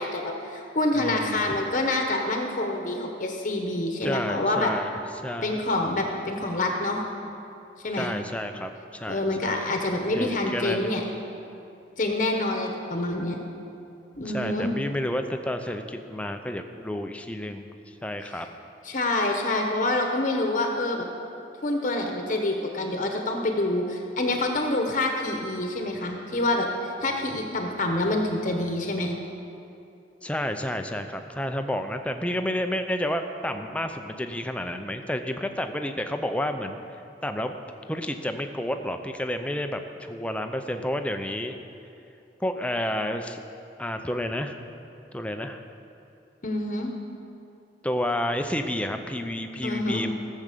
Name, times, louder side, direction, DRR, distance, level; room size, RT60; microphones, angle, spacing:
voice 1, 0.0-4.7 5.4-7.0 7.8-8.1 9.1-11.0 12.0-13.4 14.2-14.7 18.3-18.4 18.8-21.1 21.6-29.2 46.4-46.9 49.6-50.0, left 2 dB, 45° left, 2 dB, 1.1 m, -27 dB
voice 2, 0.9-1.5 4.0-4.9 5.2-5.6 7.9-9.7 10.1-10.9 14.3-17.7 18.0-18.5 30.2-36.8 37.2-37.5 37.9-41.6 42.4-43.4 43.8-44.6 45.1-45.6 47.8-50.1, left 1 dB, 5° left, 6 dB, 0.6 m, -30 dB
16.0 x 7.4 x 6.7 m, 2.7 s
head